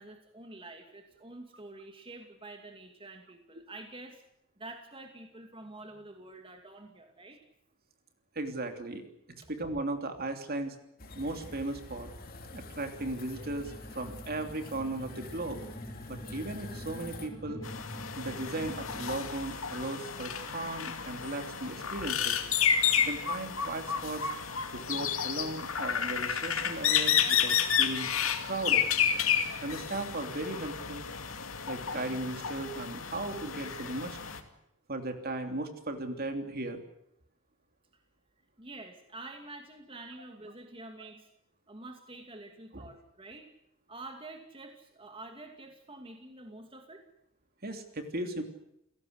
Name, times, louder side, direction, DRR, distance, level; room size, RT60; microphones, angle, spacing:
voice 1, 0.0-4.2 4.6-7.5 9.4-9.5 38.6-41.3 41.7-43.5 43.9-47.1, right 2 dB, 25° right, 4 dB, 2.5 m, -47 dB
voice 2, 8.3-9.0 9.5-10.8 11.1-12.1 12.5-15.6 16.1-17.6 18.1-22.4 23.0-24.3 24.7-28.1 28.4-28.9 29.6-31.1 31.7-34.2 34.9-36.8 42.7-42.9 47.6-48.4, right 2 dB, 45° right, 6 dB, 3.1 m, -36 dB
sound 1, 11.0-17.3, left 2 dB, 45° left, 3.4 m, -47 dB
sound 2, 12.9-19.2, equal, 15° left, 3.8 m, -46 dB
sound 3, 17.6-34.4, left 8 dB, 70° left, 2.6 m, -31 dB
29.5 x 17.5 x 8.1 m, 0.81 s
head